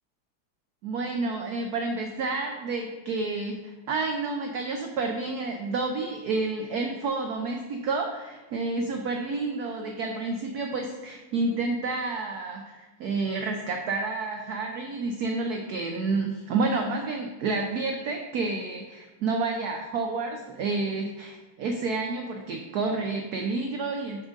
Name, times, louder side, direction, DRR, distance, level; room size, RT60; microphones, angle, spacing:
voice 1, 0.8-24.3, right 3 dB, 75° right, 3 dB, 0.9 m, -30 dB
6.1 x 3.7 x 5.1 m, 1.1 s
omnidirectional pair, 2.2 m